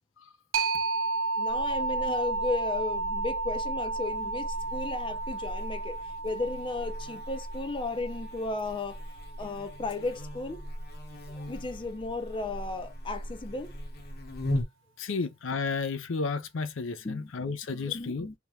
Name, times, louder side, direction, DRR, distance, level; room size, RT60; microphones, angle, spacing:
sound 1, 0.5-9.9, right 3 dB, 80° right, 0.6 m, -33 dB
voice 1, 1.4-6.0 6.2-9.0 9.4-10.6 11.3-13.7 17.0-17.3 17.7-18.3, left 3 dB, 25° left, 0.5 m, -34 dB
Buzz, 1.5-14.6, equal, 55° left, 1.0 m, -39 dB
voice 2, 15.0-18.3, left 4 dB, 75° left, 0.6 m, -32 dB
3.4 x 2.9 x 3.1 m
head